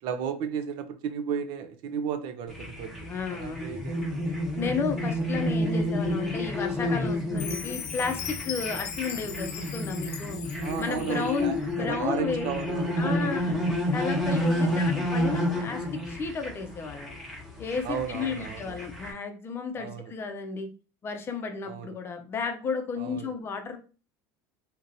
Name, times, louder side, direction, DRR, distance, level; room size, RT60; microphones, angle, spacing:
voice 1, 0.0-4.4 10.6-13.8 14.6-14.9 17.8-18.7 19.8-20.1 21.7-21.9 23.0-23.3, right 7 dB, 60° right, 0.5 m, -35 dB
sound 1, 2.5-19.1, left 1 dB, ahead, 1.1 m, -30 dB
voice 2, 3.1-3.7 4.6-10.4 10.8-12.4 13.0-13.6 13.9-17.1 17.6-20.7 21.0-23.8, left 5 dB, 25° left, 0.6 m, -33 dB
Chime, 7.4-11.5, left 9 dB, 80° left, 0.6 m, -39 dB
3.0 x 2.9 x 2.6 m
supercardioid pair, 135°, 9 cm